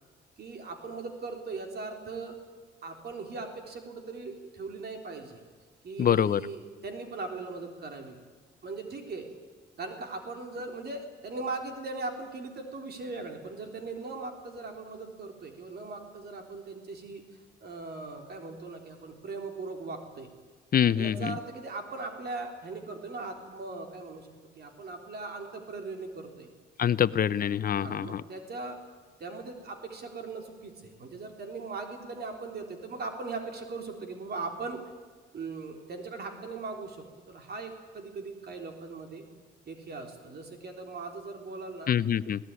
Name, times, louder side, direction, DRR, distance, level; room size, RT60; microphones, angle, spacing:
voice 1, 0.4-2.4 2.8-5.4 5.8-8.2 8.6-9.3 9.8-17.2 17.6-20.3 20.9-24.3 24.6-26.5 27.7-28.8 29.2-34.8 35.3-37.0 37.3-39.3 39.7-41.9, right 3 dB, 55° right, 4 dB, 3.7 m, -39 dB
voice 2, 6.0-6.4 20.7-21.4 26.8-28.2 41.9-42.4, left 9 dB, 45° left, 17 dB, 0.8 m, -25 dB
21.0 x 18.0 x 9.8 m, 1.4 s
cardioid pair, 90°, 20 cm